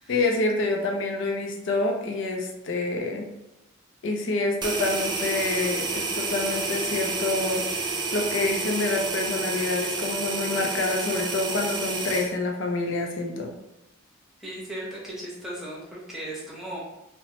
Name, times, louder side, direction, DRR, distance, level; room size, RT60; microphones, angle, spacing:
voice 1, 0.1-3.3 4.0-7.6 8.1-13.5, left 2 dB, 60° left, 2 dB, 0.4 m, -27 dB
sound 1, 4.6-12.3, right 3 dB, 20° right, 0.3 m, -29 dB
voice 2, 14.4-16.8, right 1 dB, ahead, -6 dB, 0.7 m, -37 dB
2.9 x 2.1 x 2.8 m, 0.90 s
head